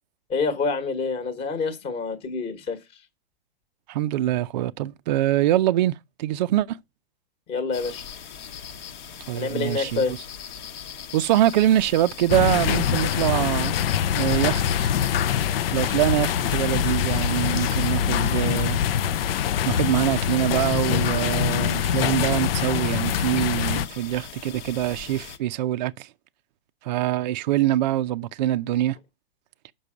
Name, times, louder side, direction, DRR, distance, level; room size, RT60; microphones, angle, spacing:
voice 1, 0.3-2.8 7.5-8.1 9.3-10.2, left 4 dB, 15° left, 1.2 m, -27 dB
voice 2, 3.9-6.8 9.3-10.2 11.1-13.8 14.1-14.9 15.7-18.8 19.6-26.1 26.8-29.0, right 13 dB, 45° right, 0.4 m, -24 dB
sound 1, 7.7-25.4, left 8 dB, 45° left, 1.0 m, -40 dB
sound 2, 12.3-23.9, left 9 dB, 65° left, 0.5 m, -24 dB
6.9 x 5.4 x 4.9 m
hypercardioid pair, 140°, 32 cm